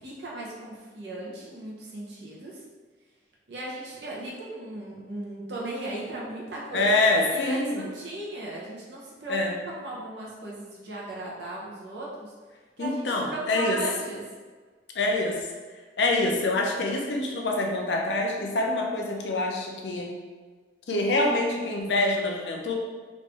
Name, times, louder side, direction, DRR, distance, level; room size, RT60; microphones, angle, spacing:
voice 1, 0.0-2.6 3.5-6.9 7.3-9.4 9.8-12.3 12.8-13.0 13.3-14.2, right 2 dB, 70° right, -5 dB, 0.7 m, -37 dB
voice 2, 6.7-7.8 9.3-9.6 12.8-13.8 14.9-15.5 16.0-20.1 20.9-22.7, left 2 dB, 75° left, 1 dB, 0.6 m, -25 dB
3.1 x 2.6 x 3.3 m, 1.4 s
head